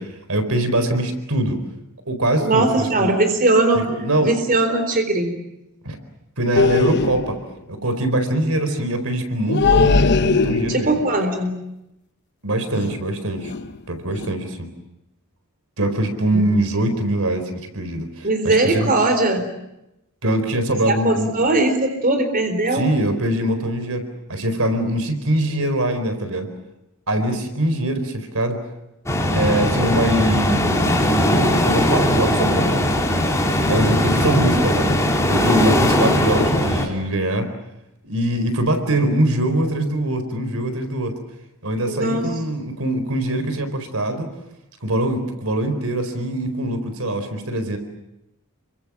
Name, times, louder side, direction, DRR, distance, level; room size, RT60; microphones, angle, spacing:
voice 1, 0.0-1.6 2.1-3.1 3.7-4.3 5.8-6.0 6.4-7.4 7.7-11.0 12.4-13.5 13.9-14.7 15.8-18.9 20.2-21.4 22.7-26.5 27.1-28.6 29.3-32.8 33.7-34.9 35.3-37.5 38.0-41.1 41.6-44.3 44.8-47.8, right 1 dB, 70° right, 8 dB, 4.4 m, -23 dB
voice 2, 2.4-3.9 4.2-5.4 10.7-11.5 16.3-16.4 18.2-19.5 21.0-22.8 41.9-42.3, right 2 dB, 40° right, 7 dB, 4.0 m, -19 dB
sound 1, 6.6-7.4 9.5-11.0 12.7-13.1 13.4-13.8 14.1-14.3, left 4 dB, 50° left, 0.9 m, -19 dB
sound 2, 29.1-36.9, left 1 dB, 15° left, 4.8 m, -19 dB
29.5 x 24.5 x 7.4 m, 0.88 s
head